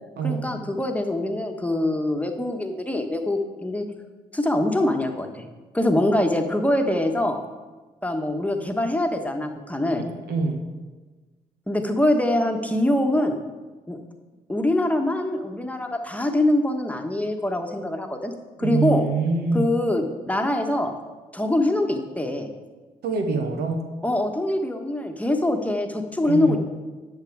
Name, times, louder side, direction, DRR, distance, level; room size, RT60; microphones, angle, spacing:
voice 1, 0.2-3.9 4.3-5.4 5.7-7.4 8.0-10.0 11.7-13.4 13.9-14.0 14.5-18.3 18.6-19.0 19.5-20.9 21.3-22.5 24.0-26.6, left 1 dB, 10° left, 4 dB, 1.4 m, -24 dB
voice 2, 9.9-10.6 18.6-19.7 23.0-23.9 26.2-26.6, right 4 dB, 65° right, 5 dB, 1.2 m, -25 dB
10.5 x 7.0 x 4.8 m, 1.3 s
hypercardioid pair, 40°, 18 cm